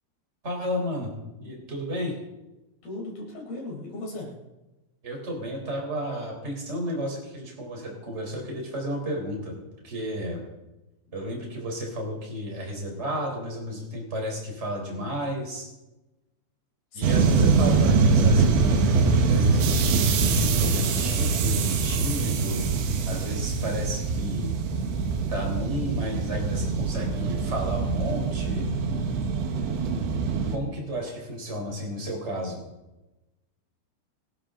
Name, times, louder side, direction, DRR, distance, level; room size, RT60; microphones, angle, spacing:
voice 1, 0.4-1.1 1.4-2.1 5.0-9.5 9.8-10.4 11.1-15.7 16.9-22.7 23.0-24.6 25.3-28.7 30.5-32.6, equal, 15° right, 0 dB, 3.7 m, -32 dB
voice 2, 2.8-4.3 16.9-17.2 30.4-30.5, left 2 dB, 55° left, -1 dB, 5.8 m, -37 dB
sound 1, 17.0-30.6, right 4 dB, 75° right, 3.8 m, -23 dB
26.0 x 12.0 x 3.9 m, 1.0 s
omnidirectional pair, 5.4 m